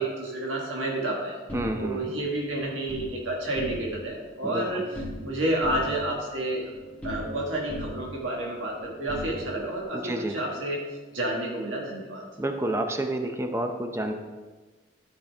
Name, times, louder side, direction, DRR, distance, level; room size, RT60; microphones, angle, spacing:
voice 1, 0.0-1.4 1.8-4.8 5.2-6.7 7.0-10.8 11.1-12.2, right 1 dB, 90° right, -2 dB, 1.5 m, -30 dB
sound 1, 1.5-3.1 3.5-4.1 4.4-5.3 5.6-7.4 7.7-9.8, left 1 dB, 5° left, 1.6 m, -39 dB
voice 2, 1.5-2.2 4.4-4.9 9.9-10.4 12.4-14.1, right 1 dB, 15° right, 5 dB, 0.6 m, -29 dB
12.5 x 5.1 x 3.4 m, 1.3 s
head